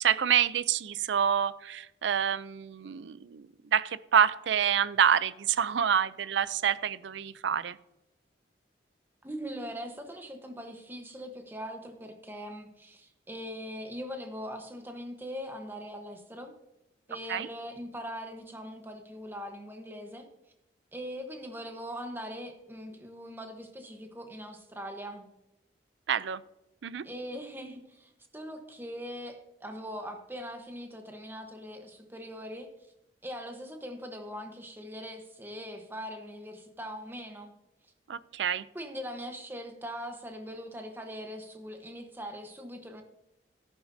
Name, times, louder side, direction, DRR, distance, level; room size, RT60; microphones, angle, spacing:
voice 1, 0.0-7.8 17.3-17.5 26.1-26.4 26.8-27.1 38.1-38.7, right 8 dB, 75° right, 17 dB, 0.4 m, -27 dB
voice 2, 9.2-16.5 17.1-20.3 20.9-25.3 27.0-32.9 33.2-37.5 38.7-43.0, equal, 10° right, 5 dB, 1.0 m, -41 dB
13.5 x 11.0 x 2.7 m, 0.92 s
head